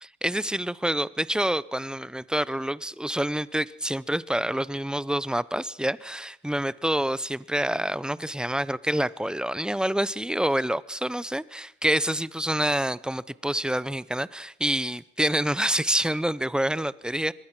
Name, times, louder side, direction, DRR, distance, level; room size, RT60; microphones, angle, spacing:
voice 1, 0.0-17.3, right 1 dB, 5° right, 0.7 m, -27 dB
25.0 x 21.0 x 6.1 m
cardioid pair, 90°, 20 cm